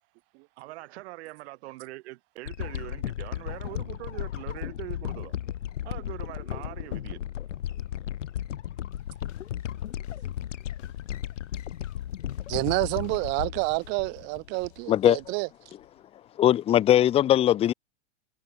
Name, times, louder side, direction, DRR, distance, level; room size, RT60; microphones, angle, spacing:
voice 1, 0.6-5.4 5.8-7.2, right 19 dB, 60° right, 6.8 m, -42 dB
sound 1, 2.5-14.8 15.2-15.3, left 11 dB, 85° left, 3.6 m, -35 dB
sound 2, 8.9-15.3, left 19 dB, 60° left, 5.2 m, -55 dB
voice 2, 12.5-15.5, right 30 dB, 30° right, 0.4 m, -28 dB
voice 3, 14.9-15.2 16.4-17.7, left 12 dB, 15° left, 0.5 m, -20 dB
supercardioid pair, 135°, 36 cm